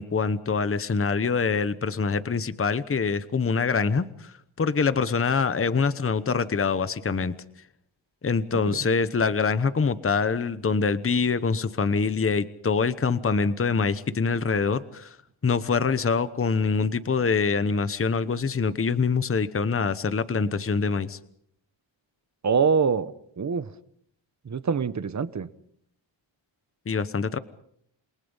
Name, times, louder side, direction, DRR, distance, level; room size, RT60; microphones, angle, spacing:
voice 1, 0.0-7.3 8.2-15.1 15.4-21.2 26.9-27.4, left 5 dB, 25° left, 14 dB, 1.0 m, -25 dB
voice 2, 22.4-23.7 24.4-25.5, right 6 dB, 35° right, 14 dB, 1.1 m, -25 dB
28.5 x 22.5 x 5.6 m, 0.68 s
wide cardioid pair, 140°, 49 cm